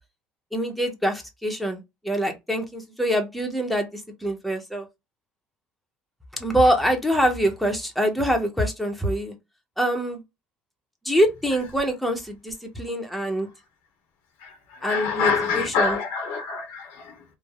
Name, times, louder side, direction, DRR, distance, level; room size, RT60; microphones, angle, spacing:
voice 1, 0.5-4.9 6.4-9.3 9.8-10.2 11.0-13.5 14.8-16.0, equal, ahead, 0.7 m, -24 dB
voice 2, 14.4-17.2, left 5 dB, 80° left, 0.9 m, -26 dB
3.2 x 2.0 x 2.3 m
cardioid pair, 120°, 4 cm